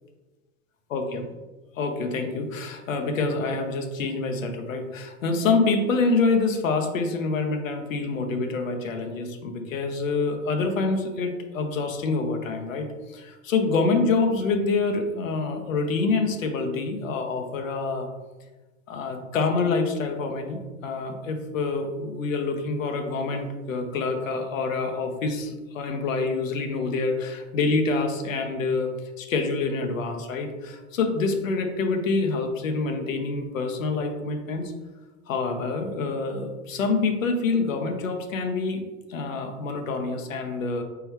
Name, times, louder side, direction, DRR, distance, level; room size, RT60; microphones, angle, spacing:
voice 1, 0.9-1.2 1.8-12.9 13.1-18.1 18.9-28.9 29.2-34.7 35.3-38.8 39.1-40.8, left 3 dB, 85° left, 4 dB, 0.7 m, -26 dB
4.4 x 3.8 x 2.8 m, 1.2 s
hypercardioid pair, 100°, 38 cm